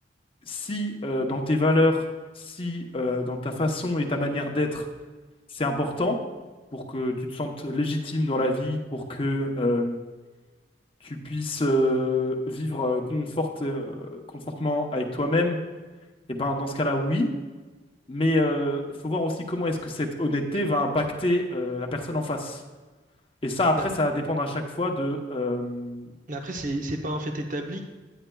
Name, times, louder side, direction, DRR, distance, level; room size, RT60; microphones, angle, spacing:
voice 1, 0.5-2.0 2.4-4.9 5.5-6.2 6.7-10.0 11.0-14.2 14.6-15.6 16.3-17.3 18.1-22.6 23.4-26.1, left 1 dB, 30° left, 2 dB, 0.8 m, -26 dB
voice 2, 26.3-27.9, right 1 dB, 50° right, 4 dB, 0.7 m, -31 dB
10.0 x 9.3 x 2.3 m, 1.3 s
head